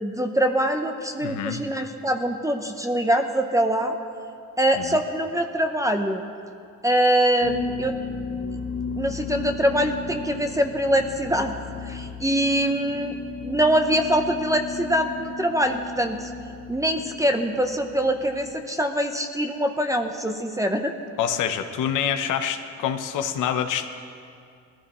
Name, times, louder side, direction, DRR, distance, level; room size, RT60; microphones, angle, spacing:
voice 1, 0.0-4.0 4.6-6.2 6.8-7.9 9.0-11.5 11.8-13.1 13.4-16.3 16.7-20.9, right 1 dB, 10° right, 5 dB, 0.8 m, -23 dB
voice 2, 1.2-1.6 4.8-5.0 21.2-23.9, left 8 dB, 90° left, 7 dB, 0.9 m, -26 dB
sound 1, 7.4-18.5, left 5 dB, 50° left, 1.2 m, -35 dB
19.5 x 14.5 x 3.1 m, 2.3 s
cardioid pair, 90°, 30 cm